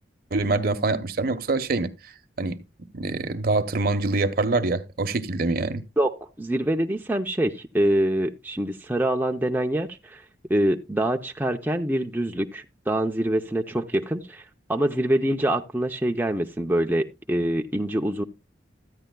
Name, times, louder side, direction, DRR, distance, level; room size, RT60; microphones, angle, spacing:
voice 1, 0.3-2.1 2.4-2.6 2.9-5.8, right 3 dB, 50° right, 0.7 m, -25 dB
voice 2, 6.0-10.2 10.5-18.2, right 1 dB, 10° right, 0.5 m, -25 dB
14.0 x 9.7 x 2.2 m
head